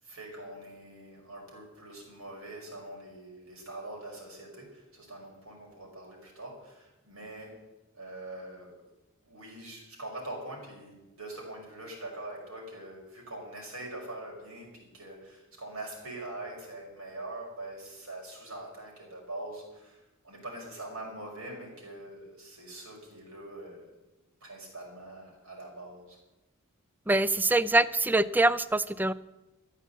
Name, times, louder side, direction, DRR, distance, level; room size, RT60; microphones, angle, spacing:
voice 1, 0.0-7.6 7.9-8.8 9.2-23.9 24.4-26.2, right 2 dB, 75° right, -1 dB, 5.7 m, -43 dB
voice 2, 27.1-29.1, right 2 dB, 10° right, 17 dB, 0.4 m, -24 dB
14.0 x 8.5 x 8.3 m, 1.0 s
head